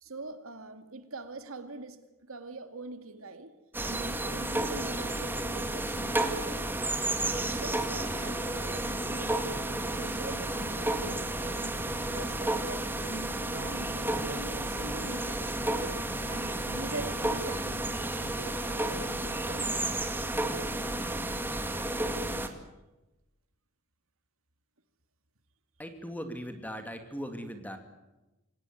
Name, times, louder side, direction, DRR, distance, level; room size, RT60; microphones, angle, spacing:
voice 1, 0.0-3.5 3.8-6.9 7.3-11.7 12.1-15.9 16.3-19.9, right 2 dB, 80° right, 2.3 m, -43 dB
sound 1, 3.7-22.5, right 1 dB, 10° right, 2.0 m, -32 dB
voice 2, 25.8-27.8, equal, 10° left, 2.5 m, -39 dB
26.5 x 17.5 x 9.4 m
head